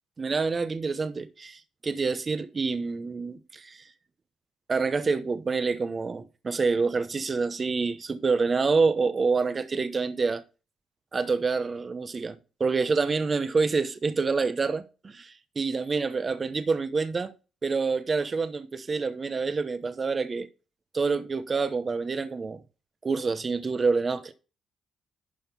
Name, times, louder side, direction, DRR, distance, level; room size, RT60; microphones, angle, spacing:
voice 1, 0.2-3.8 4.7-10.4 11.1-12.3 12.6-17.3 17.6-20.5 20.9-22.6 23.0-24.3, right 4 dB, 30° right, 0.9 m, -27 dB
11.5 x 4.3 x 5.4 m
cardioid pair, 105°, 0 cm